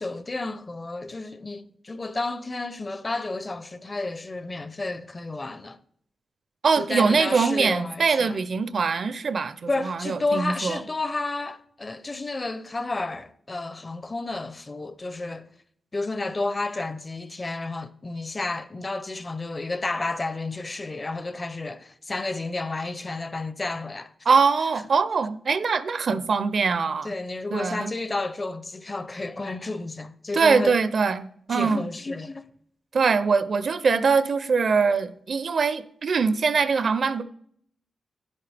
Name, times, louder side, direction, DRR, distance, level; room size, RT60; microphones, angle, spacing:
voice 1, 0.0-5.8 6.7-8.4 9.7-15.5 15.9-24.1 27.0-30.7 31.5-32.5, left 2 dB, 25° left, 0.5 m, -31 dB
voice 2, 6.6-10.8 24.3-27.1 27.5-27.9 30.3-31.9 32.9-37.2, right 5 dB, 55° right, 0.5 m, -23 dB
11.0 x 10.5 x 3.4 m
wide cardioid pair, 140°, 0 cm